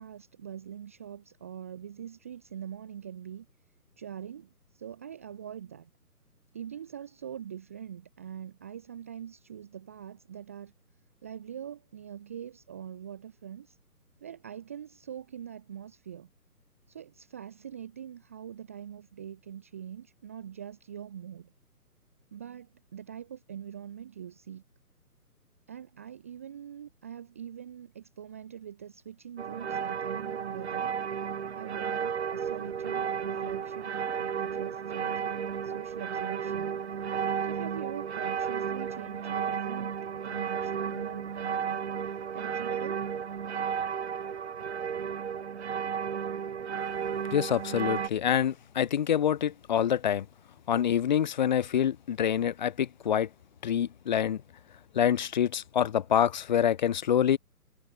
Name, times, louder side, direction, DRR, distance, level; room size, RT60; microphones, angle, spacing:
voice 1, 0.0-3.5 4.0-5.9 6.5-10.7 11.2-13.8 14.2-16.3 16.9-21.5 22.3-24.6 25.7-30.9 31.5-36.8 37.4-40.0 40.2-43.1, right 9 dB, 10° right, 0.8 m, -43 dB
sound 1, 29.4-48.1, right 7 dB, 45° right, 3.9 m, -33 dB
voice 2, 47.3-50.3 50.7-53.3 53.6-54.4 54.9-57.4, left 9 dB, 30° left, 1.7 m, -26 dB
figure-of-eight pair, 150°, 47 cm